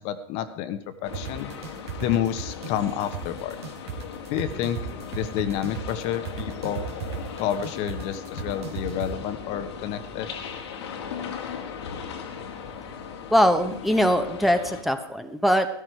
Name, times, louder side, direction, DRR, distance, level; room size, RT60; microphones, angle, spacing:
voice 1, 0.0-1.5 2.0-3.6 4.3-4.8 5.1-6.8 7.4-10.3, left 10 dB, 50° left, 10 dB, 1.2 m, -29 dB
sound 1, 1.0-14.8, left 6 dB, 80° left, 2.2 m, -38 dB
sound 2, 1.1-9.1, right 7 dB, 80° right, 2.4 m, -35 dB
voice 2, 13.3-15.7, equal, ahead, 6 dB, 1.1 m, -21 dB
14.0 x 13.0 x 4.6 m, 0.69 s
hypercardioid pair, 115°, 14 cm